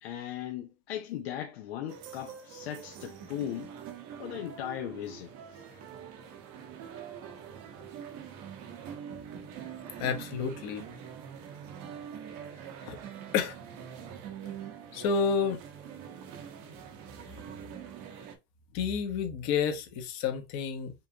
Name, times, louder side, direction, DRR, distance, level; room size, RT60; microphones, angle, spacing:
voice 1, 0.0-3.7 4.2-5.8, left 10 dB, 75° left, 0.7 m, -38 dB
sound 1, 1.9-18.4, right 8 dB, 55° right, 1.1 m, -44 dB
voice 2, 10.0-10.8 12.8-13.0 13.3-13.6 14.9-15.6 18.7-20.9, left 6 dB, 55° left, 1.2 m, -30 dB
5.6 x 2.5 x 2.9 m
supercardioid pair, 105°, 31 cm